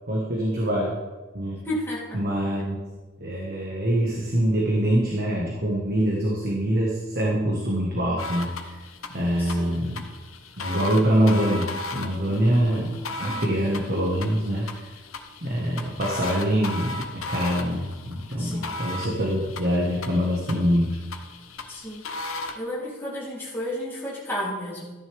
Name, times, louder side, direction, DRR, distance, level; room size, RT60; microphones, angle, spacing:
voice 1, 0.1-1.0 1.3-1.6 2.1-2.8 3.2-8.8 9.1-10.0 10.6-14.8 15.4-21.0, equal, 45° right, -3 dB, 1.6 m, -24 dB
voice 2, 1.6-2.2 9.4-9.9 12.3-12.7 13.2-13.6 18.4-18.7 21.7-22.1 22.5-24.9, equal, 10° left, -8 dB, 3.3 m, -33 dB
sound 1, 8.2-22.6, left 2 dB, 75° left, 1.1 m, -36 dB
13.5 x 10.0 x 3.6 m, 1.3 s
head